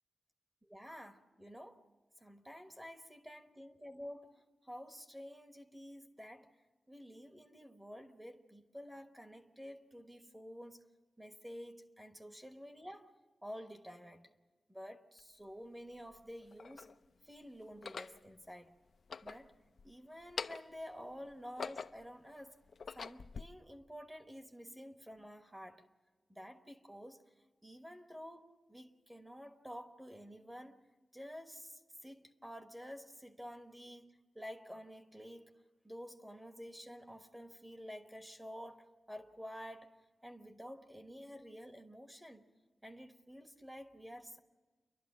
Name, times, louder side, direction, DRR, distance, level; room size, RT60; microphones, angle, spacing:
voice 1, 0.6-1.9 2.2-6.5 6.9-10.8 11.2-13.1 13.4-14.3 14.7-16.9 17.2-18.7 19.2-19.5 19.8-22.6 22.9-25.8 26.3-27.2 27.6-30.8 31.1-35.5 35.8-39.9 40.2-42.4 42.8-44.4, equal, 10° right, 1.2 m, -50 dB
sound 1, 15.2-15.3 16.1-16.9 17.7-18.2 18.9-19.9 20.2-20.8 21.3-22.1 22.6-23.4, left 5 dB, 55° left, 0.5 m, -45 dB
29.0 x 12.0 x 7.4 m
wide cardioid pair, 175°, 0 cm